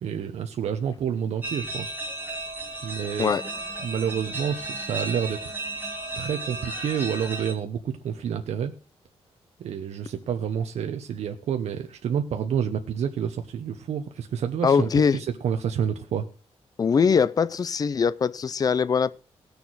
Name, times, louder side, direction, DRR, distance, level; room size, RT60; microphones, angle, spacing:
voice 1, 0.0-1.9 2.8-3.4 3.8-5.5 6.1-8.7 9.6-16.3, right 8 dB, 85° right, 1.0 m, -29 dB
sound 1, 1.4-7.5, right 2 dB, 15° right, 3.3 m, -34 dB
voice 2, 14.6-15.2 16.8-19.2, left 6 dB, 35° left, 0.5 m, -22 dB
17.0 x 7.0 x 6.3 m
wide cardioid pair, 150°, 11 cm